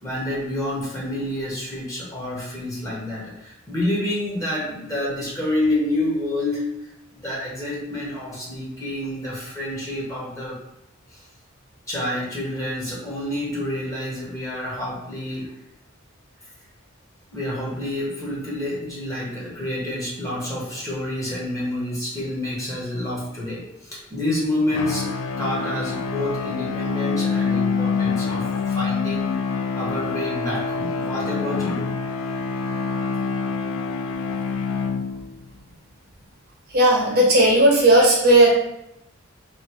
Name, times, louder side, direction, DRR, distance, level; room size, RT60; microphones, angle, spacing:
voice 1, 0.0-6.6 7.1-10.6 11.1-11.2 11.9-15.5 17.3-25.0 25.4-31.9, left 1 dB, 15° left, -6 dB, 1.2 m, -28 dB
sound 1, 24.7-35.5, left 5 dB, 80° left, 0.4 m, -26 dB
voice 2, 36.7-38.5, right 1 dB, 50° right, -2 dB, 1.1 m, -15 dB
3.2 x 2.7 x 4.4 m, 0.84 s
head